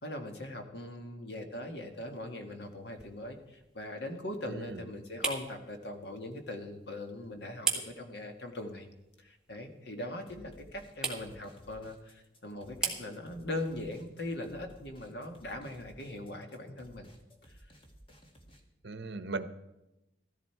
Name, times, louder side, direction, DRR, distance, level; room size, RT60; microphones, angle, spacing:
voice 1, 0.0-8.9 9.2-17.1 17.4-17.6, left 1 dB, 60° left, 5 dB, 1.7 m, -40 dB
sound 1, 1.7-16.5, right 4 dB, 5° right, 1.7 m, -43 dB
voice 2, 4.5-4.8 18.8-19.5, right 3 dB, 65° right, 11 dB, 0.9 m, -38 dB
sound 2, 10.3-18.6, equal, 30° left, 1.6 m, -57 dB
15.0 x 14.0 x 4.6 m, 0.95 s
head